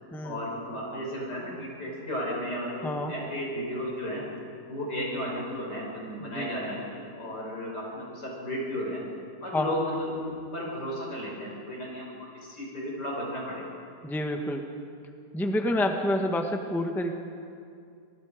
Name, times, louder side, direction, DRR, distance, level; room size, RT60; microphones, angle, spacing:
voice 1, 0.2-4.2 4.7-9.0 9.4-12.1 12.4-13.7, equal, 80° left, -3 dB, 6.3 m, -34 dB
voice 2, 14.0-14.6 15.3-17.1, left 1 dB, ahead, 4 dB, 1.1 m, -28 dB
26.5 x 19.5 x 5.1 m, 2.4 s
omnidirectional pair, 1.8 m